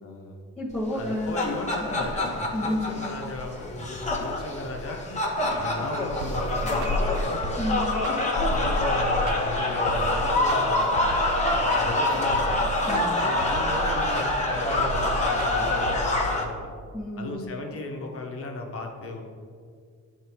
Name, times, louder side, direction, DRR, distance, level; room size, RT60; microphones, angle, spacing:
voice 1, 0.0-0.4 0.9-2.2 2.6-5.0 5.6-7.3 8.5-11.0 11.5-12.6 13.2-16.6 17.2-19.2, left 2 dB, 50° left, 2 dB, 1.2 m, -35 dB
voice 2, 0.6-1.5 1.8-2.1 2.5-3.0 7.6-8.0 12.9-13.3 16.9-17.6, left 1 dB, 5° left, -9 dB, 1.2 m, -31 dB
sound 1, 1.0-16.4, left 2 dB, 25° left, 1.3 m, -26 dB
sound 2, 6.2-16.0, right 4 dB, 75° right, 0.6 m, -35 dB
10.5 x 4.5 x 3.1 m, 2.1 s
cardioid pair, 90°, 30 cm